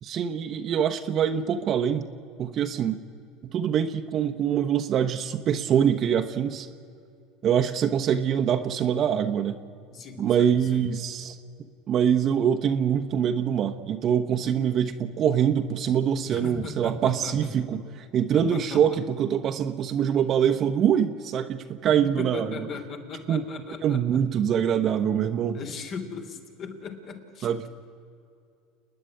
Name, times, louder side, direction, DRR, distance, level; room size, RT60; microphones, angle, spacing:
voice 1, 0.0-2.1 2.4-3.0 3.4-6.7 7.4-9.6 10.2-11.4 11.9-22.5 23.3-23.4 23.8-25.6 27.4-27.6, right 8 dB, 45° right, 6 dB, 1.0 m, -24 dB
voice 2, 9.9-10.9 16.2-17.5 18.3-19.0 21.8-24.2 25.5-27.7, left 5 dB, 45° left, 5 dB, 3.1 m, -38 dB
29.5 x 10.0 x 10.0 m, 2.5 s
hypercardioid pair, 95°, 0 cm